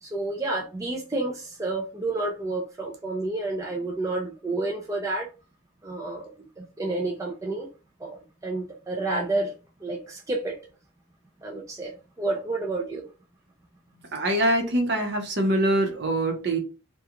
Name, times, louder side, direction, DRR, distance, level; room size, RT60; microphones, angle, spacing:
voice 1, 0.0-5.3 5.8-7.7 8.0-9.5 9.8-10.6 11.4-13.1, right 2 dB, 15° right, 0.4 m, -30 dB
voice 2, 14.1-16.6, right 1 dB, 50° right, 0.7 m, -24 dB
2.4 x 2.2 x 2.8 m
head